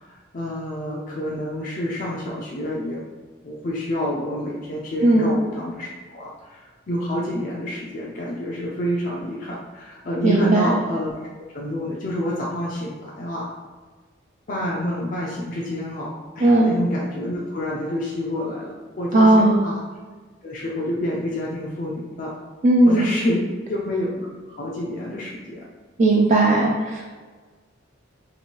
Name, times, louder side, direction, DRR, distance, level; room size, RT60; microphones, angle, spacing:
voice 1, 0.0-3.1 3.4-11.2 11.5-13.5 14.5-19.8 20.4-22.3 22.9-24.3 24.6-25.6, left 1 dB, 40° left, -4 dB, 0.4 m, -28 dB
voice 2, 5.0-5.3 10.2-10.7 16.4-16.7 19.1-19.6 22.6-23.1 26.0-27.0, right 2 dB, 35° right, -2 dB, 0.4 m, -16 dB
3.2 x 2.9 x 4.5 m, 1.4 s
head